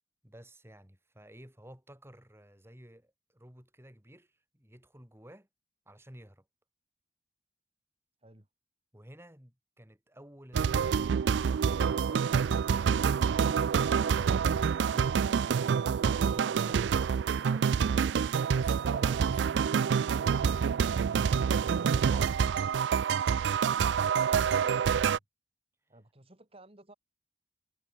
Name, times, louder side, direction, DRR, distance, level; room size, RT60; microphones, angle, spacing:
voice 1, 0.2-5.5 5.9-6.4 8.9-12.7, right 1 dB, 15° right, 5.2 m, -52 dB
sound 1, 10.5-25.2, right 7 dB, 85° right, 0.4 m, -27 dB
voice 2, 25.9-26.9, right 1 dB, 35° right, 2.9 m, -56 dB
head